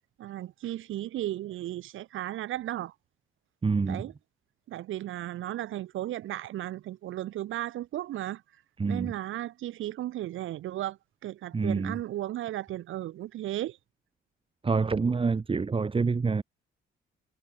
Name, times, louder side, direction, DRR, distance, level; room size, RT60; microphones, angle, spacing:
voice 1, 0.2-2.9 3.9-4.1 4.7-8.4 8.8-13.8, right 14 dB, 80° right, 4.5 m, -35 dB
voice 2, 3.6-4.0 8.8-9.1 11.5-12.0 14.6-16.4, right 4 dB, 25° right, 1.4 m, -27 dB
cardioid pair, 90°, 20 cm